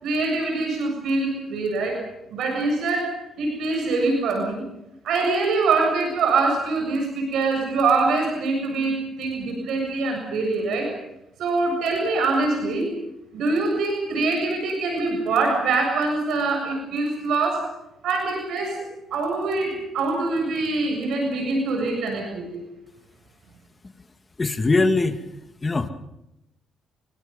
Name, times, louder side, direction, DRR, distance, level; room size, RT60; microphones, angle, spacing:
voice 1, 0.0-2.0 2.3-4.6 5.0-10.9 11.4-12.9 13.3-17.7 18.0-18.8 19.1-22.6, right 3 dB, 75° right, 2 dB, 7.2 m, -24 dB
voice 2, 24.4-25.2 25.6-25.9, left 3 dB, 25° left, 7 dB, 2.4 m, -21 dB
29.5 x 24.0 x 5.6 m, 0.86 s
cardioid pair, 90°, 0 cm